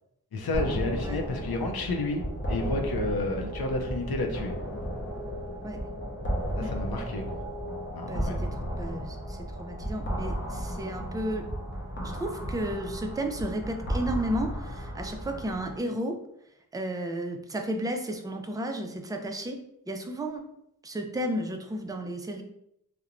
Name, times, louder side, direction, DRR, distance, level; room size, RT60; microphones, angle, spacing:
voice 1, 0.3-4.6 6.6-7.4 7.9-8.3, left 2 dB, 80° left, 3 dB, 0.6 m, -31 dB
sound 1, 0.5-15.8, equal, 30° left, 0.6 m, -34 dB
voice 2, 8.1-11.5 12.0-16.2 16.7-19.6 19.9-20.4 20.8-22.4, right 1 dB, 10° right, 4 dB, 0.3 m, -33 dB
2.9 x 2.1 x 2.4 m, 0.77 s
wide cardioid pair, 50°, 37 cm